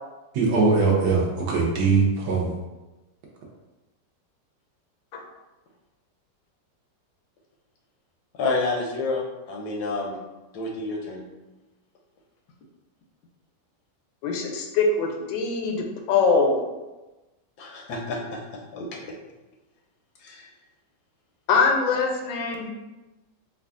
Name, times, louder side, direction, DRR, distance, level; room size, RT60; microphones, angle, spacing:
voice 1, 0.3-2.5, right 4 dB, 70° right, -3 dB, 1.1 m, -21 dB
voice 2, 8.4-10.2 10.5-11.2 17.6-18.2 18.7-19.0 20.2-20.5, left 3 dB, 75° left, -1 dB, 1.0 m, -29 dB
voice 3, 14.2-16.6 21.5-22.7, left 4 dB, 90° left, 3 dB, 1.3 m, -23 dB
3.2 x 2.3 x 3.5 m, 1.1 s
omnidirectional pair, 2.0 m